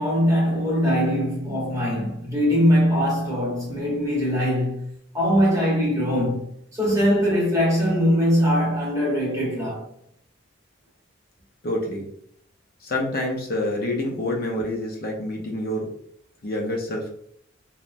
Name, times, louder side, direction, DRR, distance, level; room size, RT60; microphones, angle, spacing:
voice 1, 0.0-4.8 5.1-6.5 6.7-9.8, equal, 15° right, 0.9 m, -21 dB
voice 2, 11.6-12.1 12.8-15.9 16.4-17.1, left 1 dB, 50° left, 0.5 m, -27 dB
3.1 x 2.1 x 2.5 m
head